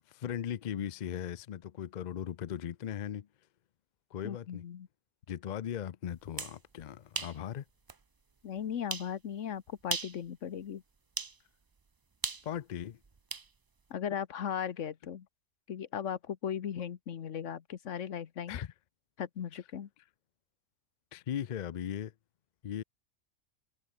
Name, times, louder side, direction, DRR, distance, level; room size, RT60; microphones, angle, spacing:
voice 1, 0.1-3.3 4.1-4.6 5.3-7.6 12.4-13.0 18.5-18.7 21.1-22.1 22.6-22.8, left 9 dB, 55° left, 0.5 m, -38 dB
voice 2, 4.2-4.9 8.4-10.8 13.9-15.3 15.7-18.6 19.2-19.9, left 8 dB, 75° left, 1.3 m, -37 dB
sound 1, 6.2-6.6 7.1-7.4 7.9-8.0 8.9-9.1 9.8-10.2 11.2-11.4 12.2-13.5, right 4 dB, 40° right, 0.3 m, -37 dB
omnidirectional pair, 1.3 m